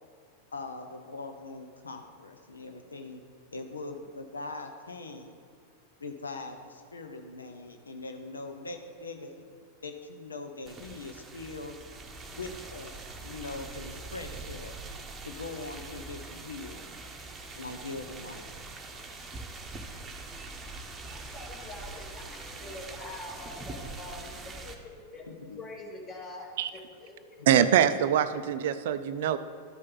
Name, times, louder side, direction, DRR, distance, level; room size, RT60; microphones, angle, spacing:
voice 1, 0.5-3.2 3.5-5.3 6.0-9.5 9.8-11.7 12.3-14.7 15.2-16.8 17.5-18.4 25.3-25.6 27.4-27.5, left 3 dB, 75° left, 6 dB, 0.7 m, -41 dB
sound 1, 10.7-24.7, right 3 dB, 20° right, 1.0 m, -43 dB
voice 2, 21.0-24.8 25.1-25.2 25.6-27.4, left 2 dB, 25° left, -2 dB, 2.2 m, -44 dB
voice 3, 27.5-29.4, right 9 dB, 55° right, 12 dB, 0.4 m, -24 dB
13.0 x 5.3 x 3.9 m, 2.3 s
figure-of-eight pair, 90°, 0 cm